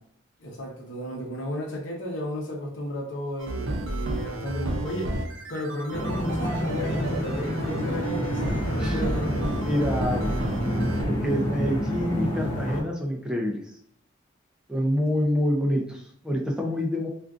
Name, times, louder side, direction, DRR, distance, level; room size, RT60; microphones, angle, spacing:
voice 1, 0.4-5.2 5.5-9.5, equal, 65° left, 0 dB, 0.8 m, -33 dB
sound 1, 3.4-11.0, right 1 dB, 80° right, 0.5 m, -32 dB
sound 2, 5.9-12.8, equal, 40° left, 1.3 m, -28 dB
voice 2, 9.6-13.8 14.7-17.1, equal, 5° right, 0 dB, 0.3 m, -27 dB
3.5 x 2.4 x 2.4 m, 0.63 s
head